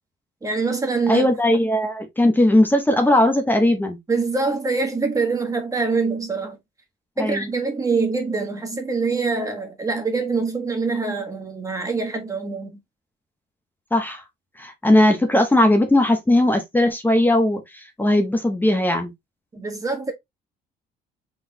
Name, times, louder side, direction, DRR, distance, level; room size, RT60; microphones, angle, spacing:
voice 1, 0.4-1.3 4.1-6.6 7.2-12.8 19.5-20.1, right 4 dB, 20° right, 1.2 m, -24 dB
voice 2, 1.1-4.0 7.2-7.5 13.9-14.2 14.6-19.1, left 1 dB, 10° left, 1.0 m, -18 dB
4.0 x 3.4 x 2.7 m
cardioid pair, 110°, 17 cm